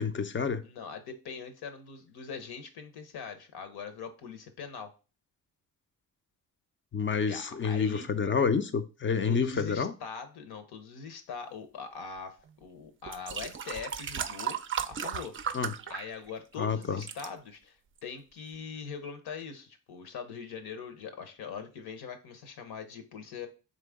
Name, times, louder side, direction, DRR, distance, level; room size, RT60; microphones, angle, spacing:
voice 1, 0.0-0.6 6.9-9.9 15.5-15.7 16.6-17.0, left 5 dB, 30° left, 0.5 m, -28 dB
voice 2, 0.6-4.9 7.3-8.4 9.2-14.6 14.9-15.4 15.9-23.5, left 6 dB, 75° left, 0.9 m, -42 dB
sound 1, 12.4-12.5 13.1-16.5 16.8-17.3 18.0-18.1, right 8 dB, 35° right, 0.4 m, -36 dB
3.8 x 3.2 x 3.5 m
cardioid pair, 70°, 38 cm